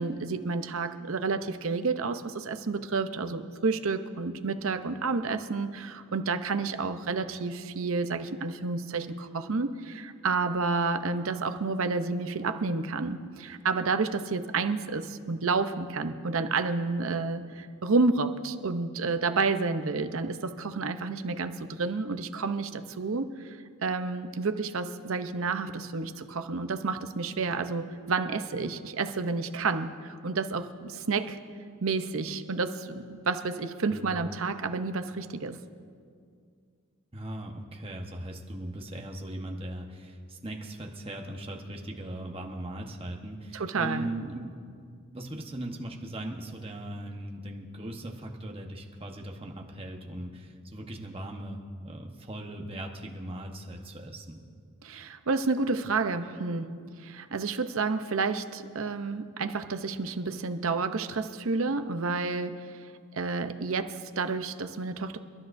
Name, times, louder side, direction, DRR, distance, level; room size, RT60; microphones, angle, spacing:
voice 1, 0.0-23.6 23.8-31.4 31.8-35.6 43.5-44.1 54.8-56.7 57.0-62.7 63.1-65.2, right 4 dB, 65° right, 8 dB, 0.7 m, -30 dB
voice 2, 37.1-44.7 45.1-54.4, right 1 dB, 25° right, 1 dB, 1.1 m, -39 dB
28.5 x 12.5 x 2.6 m, 2.2 s
head